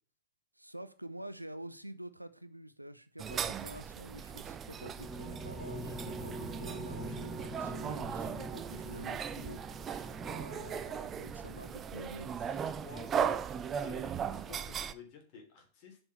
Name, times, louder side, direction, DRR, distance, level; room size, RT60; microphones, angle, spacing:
voice 1, 0.6-9.6 10.2-12.3, right 1 dB, 90° right, 0.6 m, -48 dB
sound 1, 3.2-14.9, right 7 dB, 25° right, 0.6 m, -38 dB
sound 2, 4.3-14.0, right 2 dB, 10° right, 1.6 m, -45 dB
voice 2, 12.8-13.1 13.8-16.0, left 5 dB, 45° left, 3.2 m, -52 dB
7.2 x 5.3 x 7.0 m
figure-of-eight pair, 90°, 0 cm